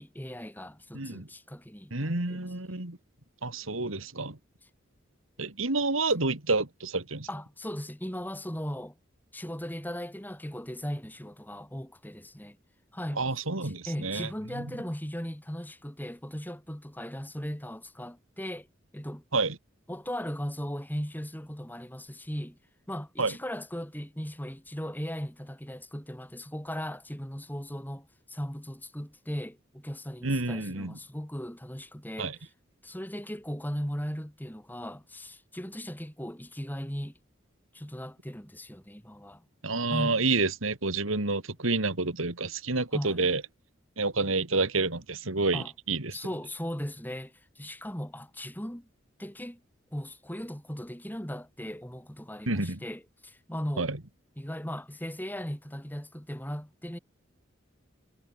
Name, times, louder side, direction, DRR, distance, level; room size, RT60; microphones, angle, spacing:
voice 1, 0.0-2.4 7.3-9.0 9.3-12.6 12.9-13.2 13.6-18.7 18.9-19.2 19.9-22.6 22.9-32.3 32.8-37.2 37.7-39.4 39.9-40.2 42.9-43.3 45.5-45.7 46.1-48.9 49.2-49.6 49.9-53.9 54.4-57.0, equal, 10° left, 4.3 m, -38 dB
voice 2, 0.9-1.3 1.9-3.0 3.4-4.4 5.4-7.3 13.2-14.7 19.3-19.6 23.2-23.3 30.2-31.0 32.2-32.4 39.6-43.4 44.0-46.2 52.5-52.8 53.8-54.0, right 3 dB, 90° right, 2.8 m, -29 dB
head